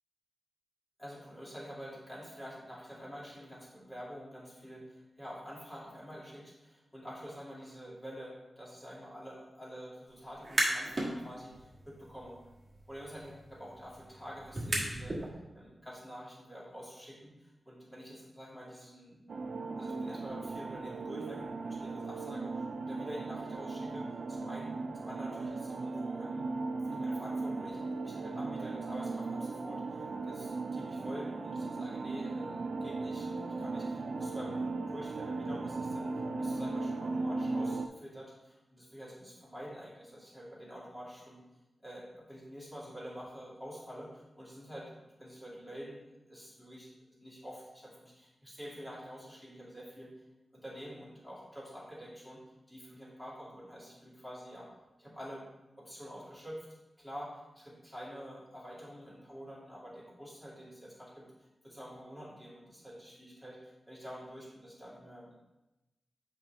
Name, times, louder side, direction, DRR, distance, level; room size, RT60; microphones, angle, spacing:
voice 1, 1.0-12.4 12.9-15.2 15.5-19.2 19.8-26.5 26.8-41.4 41.8-44.9 45.2-46.9 47.2-50.1 50.5-52.4 52.7-54.7 55.0-55.5 55.8-56.7 57.0-65.3, equal, 10° left, -7 dB, 2.3 m, -47 dB
sound 1, 10.3-11.1 11.5-15.3, right 1 dB, 30° right, 1.5 m, -36 dB
sound 2, 19.3-37.9, right 3 dB, 60° right, 0.3 m, -37 dB
7.5 x 4.9 x 3.4 m, 1.0 s
wide cardioid pair, 135°, 0 cm